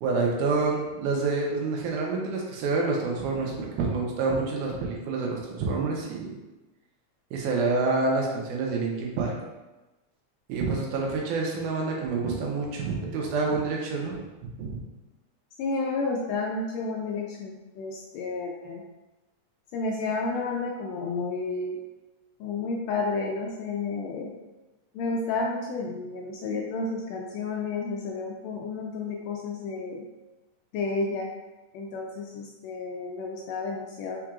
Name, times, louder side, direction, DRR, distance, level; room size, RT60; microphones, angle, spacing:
voice 1, 0.0-6.4 7.3-9.3 10.5-14.8, right 3 dB, 85° right, -1 dB, 2.3 m, -28 dB
voice 2, 15.6-18.8 19.7-21.8 22.4-24.3 24.9-30.0 30.7-31.3 31.7-34.2, left 3 dB, 80° left, -1 dB, 1.6 m, -31 dB
4.8 x 4.4 x 2.4 m, 1.1 s
omnidirectional pair, 3.4 m